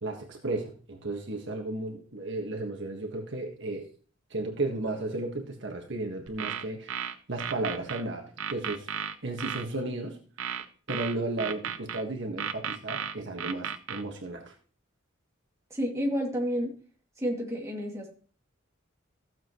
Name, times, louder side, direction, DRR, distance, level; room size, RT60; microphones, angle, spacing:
voice 1, 0.0-3.9 4.3-10.2 10.9-14.5, right 2 dB, 60° right, 3 dB, 1.5 m, -34 dB
sound 1, 6.3-8.0 8.4-9.6 10.4-12.0 12.4-14.0, right 8 dB, 80° right, 0.8 m, -34 dB
voice 2, 15.7-16.7 17.2-18.1, equal, 15° right, -1 dB, 2.3 m, -30 dB
15.0 x 7.5 x 3.0 m, 0.41 s
head